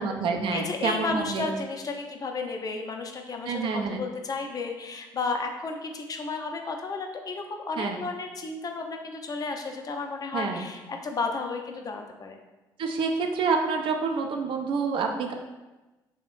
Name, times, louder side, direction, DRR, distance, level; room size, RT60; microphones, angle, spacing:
voice 1, 0.0-1.5 3.5-4.0 7.8-8.0 10.3-10.7 12.8-15.3, right 4 dB, 55° right, 3 dB, 0.4 m, -27 dB
voice 2, 0.5-12.4, left 4 dB, 35° left, 4 dB, 0.4 m, -33 dB
2.9 x 2.0 x 3.1 m, 1.1 s
hypercardioid pair, 55°, 10 cm